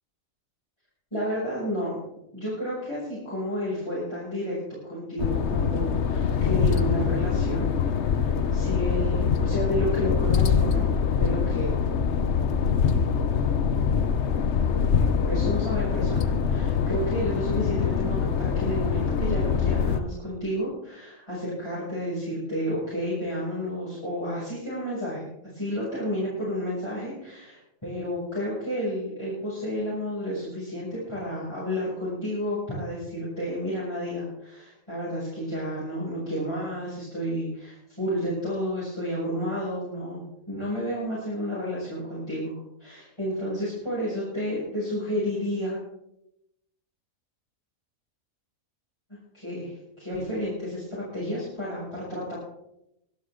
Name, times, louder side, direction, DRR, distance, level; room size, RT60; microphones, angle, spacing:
voice 1, 1.1-2.0 2.3-4.6 4.8-7.7 8.1-10.9 11.2-11.7 15.0-25.3 25.5-45.8 49.3-52.4, equal, 20° left, -9 dB, 7.0 m, -31 dB
sound 1, 5.2-20.0, left 6 dB, 60° left, 1.1 m, -24 dB
24.5 x 11.5 x 3.8 m, 0.84 s
omnidirectional pair, 1.5 m